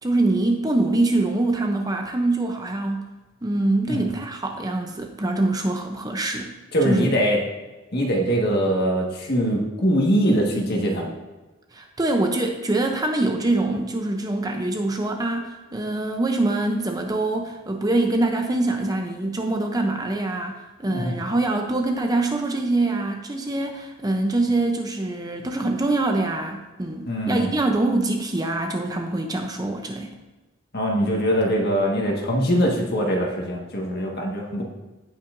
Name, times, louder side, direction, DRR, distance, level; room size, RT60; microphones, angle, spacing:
voice 1, 0.0-3.1 3.4-6.5 6.8-7.1 11.7-30.1, right 2 dB, 20° right, 3 dB, 0.6 m, -24 dB
voice 2, 6.7-7.4 7.9-11.1 20.9-21.1 27.1-27.5 30.7-34.6, equal, 50° left, -1 dB, 1.6 m, -22 dB
16.0 x 5.7 x 2.6 m, 1.2 s
head